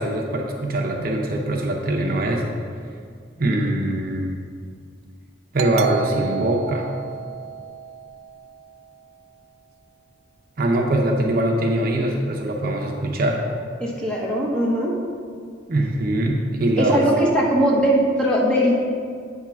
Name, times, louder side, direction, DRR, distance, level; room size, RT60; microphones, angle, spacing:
voice 1, 0.0-2.4 3.4-4.4 5.5-6.9 10.6-13.4 15.7-17.1, right 1 dB, 50° right, 0 dB, 0.7 m, -22 dB
Doorbell, 5.6-8.9, right 8 dB, 80° right, 0.3 m, -31 dB
voice 2, 13.8-14.9 16.8-18.8, equal, 5° left, -5 dB, 1.1 m, -20 dB
8.3 x 3.6 x 5.8 m, 2.1 s
head